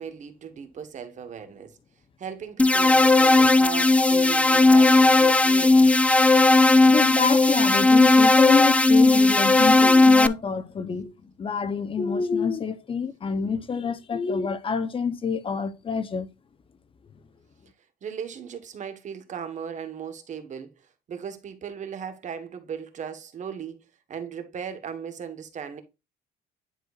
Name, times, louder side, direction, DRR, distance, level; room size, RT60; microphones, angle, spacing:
voice 1, 0.0-1.8 2.2-5.9 18.0-25.8, right 7 dB, 45° right, 1.5 m, -37 dB
sound 1, 2.6-10.3, left 2 dB, 10° left, 0.4 m, -16 dB
voice 2, 6.9-11.1 11.4-16.3, left 5 dB, 30° left, 0.8 m, -27 dB
10.5 x 4.4 x 2.5 m
cardioid pair, 110°, 17 cm